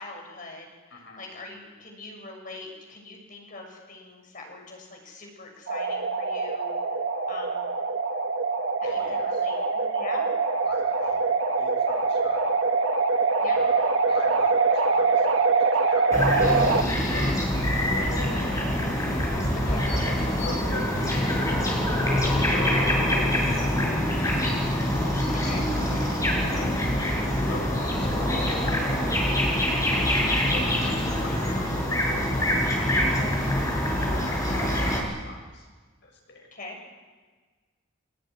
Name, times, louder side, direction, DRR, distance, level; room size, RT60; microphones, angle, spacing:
voice 1, 0.0-6.7 7.3-7.6 8.8-10.3 13.4-13.6 16.3-17.5 19.6-19.8 21.9-22.4 25.3-25.7 26.5-26.7 30.8-31.0 36.5-36.8, left 2 dB, 40° left, 1 dB, 7.0 m, -40 dB
sound 1, 5.7-16.8, right 4 dB, 80° right, 2.1 m, -24 dB
voice 2, 8.8-9.5 10.6-11.3 11.6-12.5 13.5-15.5 15.9-16.0 16.5-16.8 17.1-18.6 19.1-21.3 22.5-25.5 26.2-27.7 28.0-29.8 30.5-35.7 36.0-36.5, left 2 dB, 60° left, 1 dB, 7.0 m, -42 dB
sound 2, 16.1-35.0, left 1 dB, 15° left, 6.5 m, -25 dB
25.0 x 20.0 x 9.8 m, 1.4 s
head